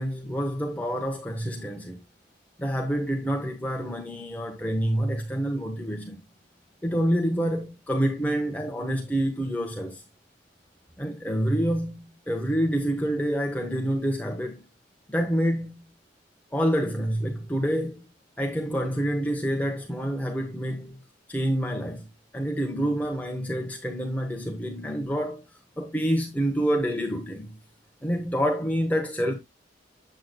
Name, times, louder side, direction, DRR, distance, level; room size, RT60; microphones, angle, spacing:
voice 1, 0.0-2.0 2.6-6.2 6.8-10.0 11.0-14.6 15.1-15.9 16.5-18.1 18.4-21.0 21.3-22.1 22.3-25.4 25.8-27.6 28.0-29.3, equal, 10° left, 0.9 m, -27 dB
7.8 x 7.6 x 2.3 m
head